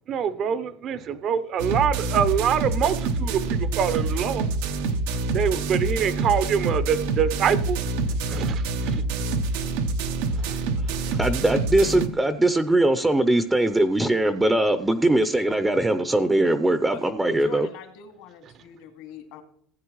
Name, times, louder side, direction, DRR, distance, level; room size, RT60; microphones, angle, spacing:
voice 1, 0.1-4.5 5.3-9.1 10.3-10.7, right 8 dB, 50° right, 0.9 m, -25 dB
sound 1, 1.6-12.1, right 3 dB, 80° right, 1.1 m, -26 dB
voice 2, 10.8-17.7, right 1 dB, 10° right, 0.7 m, -21 dB
voice 3, 16.9-19.4, left 8 dB, 75° left, 2.3 m, -43 dB
16.5 x 8.9 x 3.2 m
supercardioid pair, 105°, 0 cm